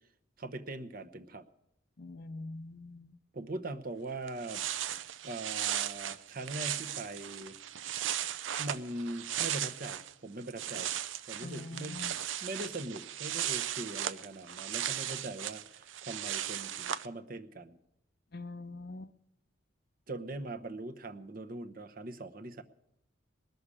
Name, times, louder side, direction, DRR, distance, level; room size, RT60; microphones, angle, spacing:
voice 1, 0.4-1.4 3.3-4.6 5.2-7.6 8.6-10.9 11.3-12.1 12.4-17.8 20.1-22.6, right 2 dB, 45° right, 7 dB, 0.9 m, -41 dB
voice 2, 2.0-3.2 11.4-12.1 18.3-19.1, left 2 dB, 55° left, 13 dB, 0.6 m, -44 dB
sound 1, 4.0-4.1 4.3-10.1 10.4-17.1, right 11 dB, 75° right, 0.6 m, -37 dB
20.0 x 6.8 x 9.8 m, 0.80 s
head